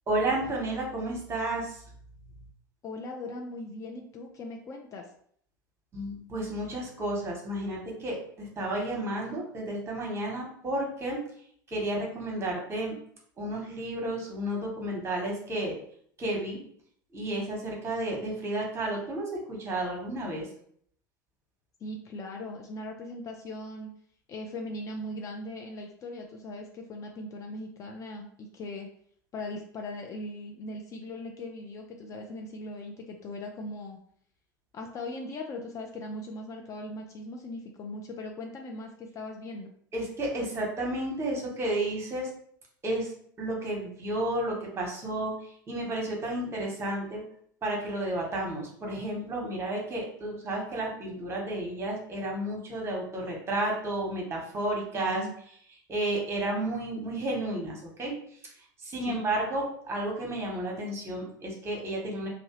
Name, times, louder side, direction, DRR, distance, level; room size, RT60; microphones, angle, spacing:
voice 1, 0.1-1.8 5.9-11.2 11.7-13.0 13.4-15.8 16.2-16.6 17.1-20.5 39.9-42.3 42.8-43.1 43.4-47.2 47.6-55.3 55.9-58.1 58.8-62.3, right 1 dB, 25° right, -1 dB, 0.9 m, -32 dB
voice 2, 2.8-5.0 21.8-23.9 24.3-28.9 29.3-34.0 34.7-39.7 54.9-55.3 59.1-59.2, left 1 dB, 30° left, 2 dB, 0.3 m, -39 dB
2.6 x 2.0 x 2.9 m, 0.62 s
figure-of-eight pair, 75°, 11 cm